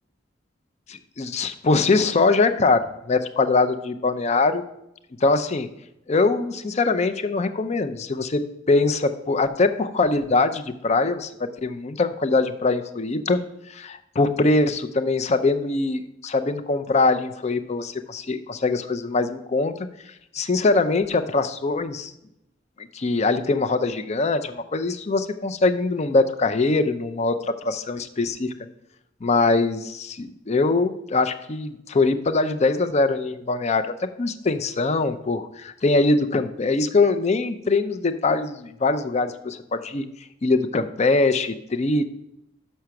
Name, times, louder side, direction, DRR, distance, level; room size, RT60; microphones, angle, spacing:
voice 1, 0.9-4.6 5.2-5.7 6.1-8.4 8.7-13.4 13.7-19.7 20.3-22.1 22.8-28.5 29.2-33.9 34.2-40.0 40.4-42.0, left 3 dB, 35° left, 10 dB, 0.5 m, -22 dB
6.3 x 5.7 x 5.9 m, 0.83 s
head